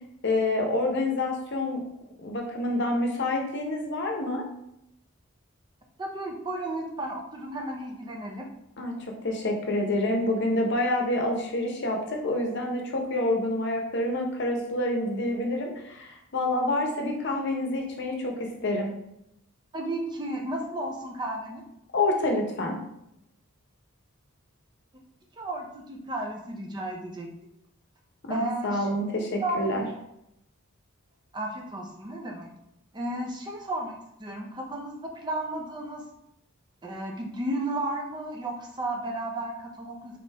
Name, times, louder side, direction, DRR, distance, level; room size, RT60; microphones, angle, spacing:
voice 1, 0.2-1.8 2.2-4.4 8.8-9.0 9.2-18.9 21.9-22.8 28.3-29.9, left 1 dB, 55° left, 2 dB, 0.8 m, -27 dB
voice 2, 6.0-8.5 19.7-21.6 25.4-27.3 28.3-28.9 29.1-30.0 31.3-32.5 32.9-36.0 36.8-40.2, right 1 dB, 20° right, 1 dB, 0.6 m, -33 dB
3.8 x 3.3 x 3.3 m, 0.80 s
head